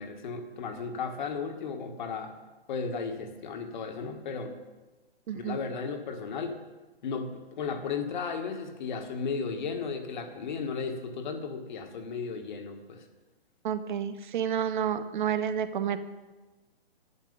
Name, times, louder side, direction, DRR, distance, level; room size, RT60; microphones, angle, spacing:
voice 1, 0.0-2.3 2.7-4.6 5.3-6.6 7.0-13.1, left 5 dB, 45° left, 6 dB, 1.6 m, -35 dB
voice 2, 5.3-5.6 13.6-16.0, right 8 dB, 50° right, 12 dB, 1.0 m, -30 dB
11.0 x 10.0 x 5.3 m, 1.2 s
hypercardioid pair, 140°, 32 cm